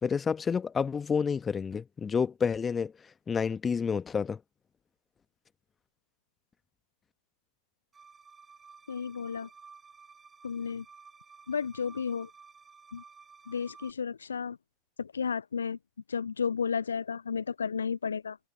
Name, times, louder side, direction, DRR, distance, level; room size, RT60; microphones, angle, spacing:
voice 1, 0.0-2.9 3.3-4.4, left 6 dB, 20° left, 1.3 m, -29 dB
sound 1, 7.9-13.9, right 5 dB, 15° right, 7.3 m, -54 dB
voice 2, 8.9-9.5 10.4-10.8 11.5-12.3 12.9-13.0 13.5-14.6 15.0-15.8 16.1-18.4, left 6 dB, 70° left, 0.5 m, -32 dB
figure-of-eight pair, 90°, 0 cm